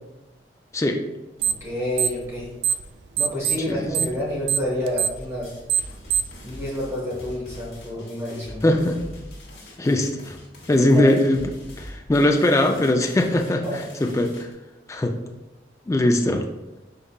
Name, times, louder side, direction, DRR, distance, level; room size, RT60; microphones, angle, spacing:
voice 1, 0.7-1.0 3.7-3.9 8.6-9.0 9.8-10.4 10.7-11.5 11.8-13.6 14.0-14.5 14.9-15.2 15.9-16.5, left 1 dB, 15° left, 4 dB, 0.3 m, -20 dB
sound 1, 1.4-1.7 1.9-2.9 3.2-6.4, right 8 dB, 80° right, 0.4 m, -23 dB
voice 2, 1.5-2.5 3.2-5.5 6.4-8.8 10.9-11.1 13.6-13.8, left 1 dB, 15° right, -6 dB, 1.1 m, -29 dB
sound 2, 5.1-14.5, left 1 dB, 65° left, 1.2 m, -43 dB
5.3 x 3.8 x 2.3 m, 1.0 s
head